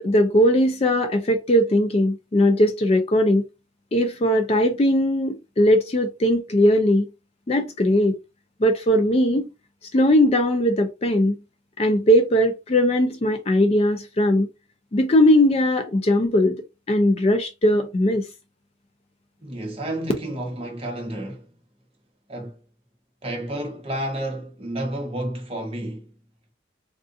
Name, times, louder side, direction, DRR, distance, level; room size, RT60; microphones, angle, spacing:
voice 1, 0.0-3.4 3.9-7.1 7.5-8.1 8.6-9.5 9.9-11.3 11.8-14.5 14.9-16.6 16.9-18.3, equal, 30° left, 0.4 m, -19 dB
voice 2, 19.4-21.5 22.3-22.6 23.2-26.1, right 1 dB, 30° right, 0.8 m, -31 dB
3.6 x 2.4 x 2.5 m
head